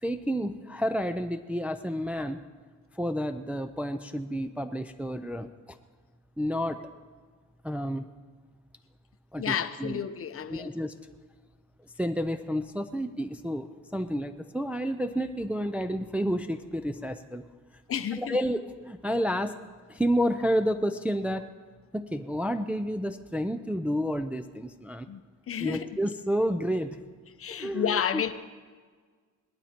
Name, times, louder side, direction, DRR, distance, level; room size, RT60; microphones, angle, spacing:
voice 1, 0.0-2.4 2.9-5.8 6.4-6.8 7.6-8.1 9.3-10.0 10.5-10.9 12.0-17.4 18.2-19.6 19.9-21.5 21.9-25.1 25.6-27.0 27.5-28.2, equal, 5° right, 0.4 m, -30 dB
voice 2, 9.4-10.7 17.9-18.4 25.1-25.2 25.5-25.9 27.4-28.3, left 8 dB, 45° left, 0.7 m, -30 dB
18.5 x 12.0 x 4.4 m
cardioid pair, 125°, 31 cm